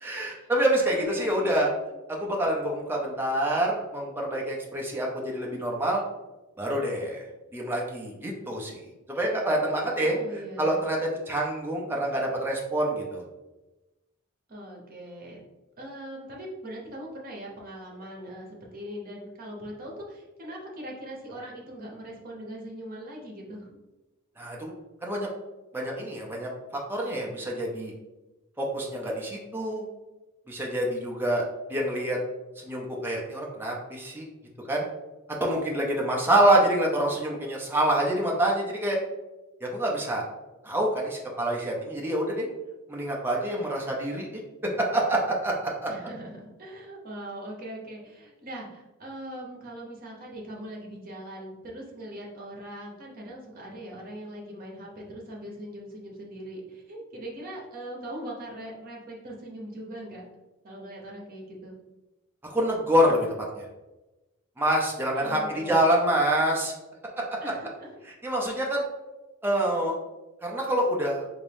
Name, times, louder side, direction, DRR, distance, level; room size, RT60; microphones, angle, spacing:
voice 1, 0.0-1.7 2.1-6.0 6.6-7.2 7.5-8.8 9.1-10.1 10.6-13.2 24.4-24.7 25.0-25.3 25.7-27.9 28.6-29.9 30.5-31.4 31.7-32.2 32.6-34.2 34.7-34.8 35.4-39.0 39.6-40.2 40.6-42.5 42.9-44.4 44.9-45.9 62.4-63.3 63.5-63.6 64.6-66.7 67.2-67.3 68.2-68.8 69.4-70.0 70.4-71.2, right 1 dB, 10° right, -2 dB, 0.5 m, -26 dB
voice 2, 0.9-1.7 10.0-10.8 14.5-15.4 15.8-23.7 45.9-60.3 60.6-61.8 65.1-65.9 67.4-67.9, right 1 dB, 40° right, -2 dB, 0.9 m, -40 dB
3.5 x 2.6 x 3.4 m, 1.1 s
head